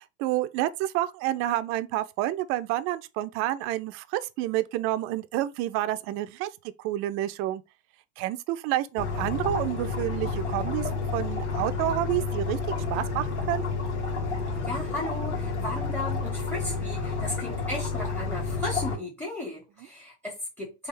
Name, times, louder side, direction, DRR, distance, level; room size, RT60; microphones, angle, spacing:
voice 1, 0.0-6.5 6.8-7.6 8.2-12.6 12.9-13.6, right 14 dB, 40° right, 0.4 m, -29 dB
sound 1, 9.0-19.0, left 4 dB, 85° left, 1.4 m, -30 dB
voice 2, 14.6-20.9, left 1 dB, 5° left, 0.8 m, -35 dB
3.4 x 2.4 x 3.3 m
hypercardioid pair, 100°, 34 cm